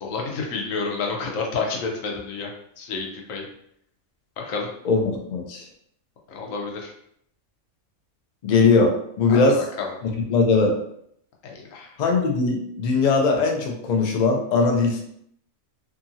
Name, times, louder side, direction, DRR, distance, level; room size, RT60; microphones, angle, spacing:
voice 1, 0.0-2.5 2.8-3.4 4.4-4.7 6.3-6.9 9.3-9.6 11.4-11.9, left 4 dB, 80° left, 0 dB, 1.1 m, -29 dB
voice 2, 4.8-5.7 8.4-9.6 10.0-10.8 12.0-15.0, left 4 dB, 60° left, 2 dB, 0.4 m, -20 dB
2.8 x 2.5 x 2.6 m, 0.70 s
omnidirectional pair, 1.3 m